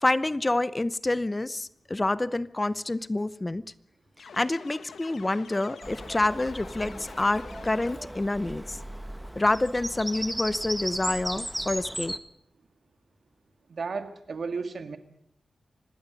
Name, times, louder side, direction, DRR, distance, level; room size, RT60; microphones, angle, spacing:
voice 1, 0.0-3.6 4.2-8.8 9.4-12.1, left 2 dB, 25° left, 0.7 m, -27 dB
sound 1, 4.2-8.3, left 6 dB, 85° left, 1.4 m, -47 dB
Bird vocalization bird call bird song, 5.8-12.2, equal, 5° right, 1.4 m, -36 dB
voice 2, 13.7-15.0, right 4 dB, 65° right, 2.1 m, -33 dB
25.5 x 19.5 x 5.3 m
wide cardioid pair, 80°, 0 cm